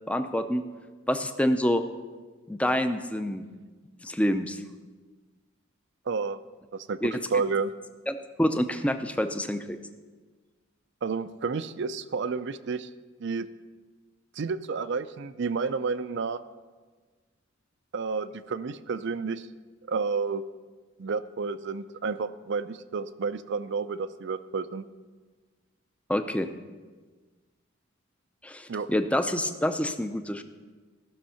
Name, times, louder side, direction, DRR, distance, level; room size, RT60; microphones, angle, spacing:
voice 1, 0.1-0.6 1.1-1.8 2.5-3.5 4.0-4.6 7.0-7.2 8.1-9.8 26.1-26.5 28.4-30.4, equal, 5° left, 8 dB, 0.5 m, -27 dB
voice 2, 6.1-6.4 6.7-7.0 7.3-7.7 11.0-12.9 13.2-13.5 14.4-16.4 17.9-19.5 19.9-20.4 21.0-24.8 28.7-28.9, right 4 dB, 60° right, 14 dB, 0.5 m, -30 dB
15.0 x 6.4 x 5.7 m, 1.4 s
head